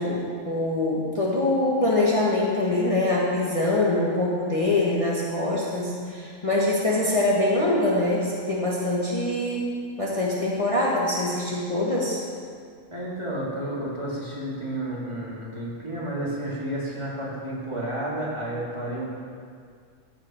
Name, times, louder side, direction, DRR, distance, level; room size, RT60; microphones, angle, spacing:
voice 1, 0.0-9.7 10.0-12.2, left 2 dB, 25° left, -6 dB, 1.5 m, -24 dB
voice 2, 12.9-19.2, right 1 dB, 25° right, -7 dB, 2.7 m, -31 dB
14.5 x 8.7 x 4.5 m, 2.1 s
omnidirectional pair, 1.3 m